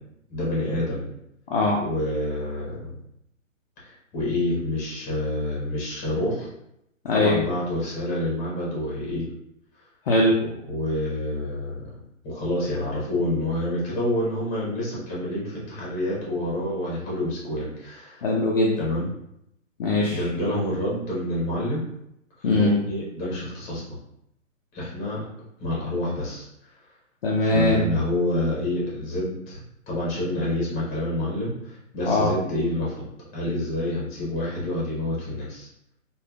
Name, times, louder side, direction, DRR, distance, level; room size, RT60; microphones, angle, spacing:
voice 1, 0.3-1.1 1.7-3.0 3.8-6.5 7.1-9.3 10.7-11.8 12.2-18.2 18.8-19.1 20.1-21.8 22.4-23.8 24.7-25.3 25.6-26.5 27.4-29.6 29.9-35.7, left 1 dB, 20° left, -5 dB, 1.0 m, -28 dB
voice 2, 7.0-7.4 10.1-10.4 18.2-18.8 19.8-20.2 22.4-22.7 27.2-27.9 32.0-32.3, left 2 dB, 45° left, -3 dB, 0.5 m, -20 dB
3.2 x 2.4 x 2.3 m, 0.79 s
figure-of-eight pair, 130°, 40 cm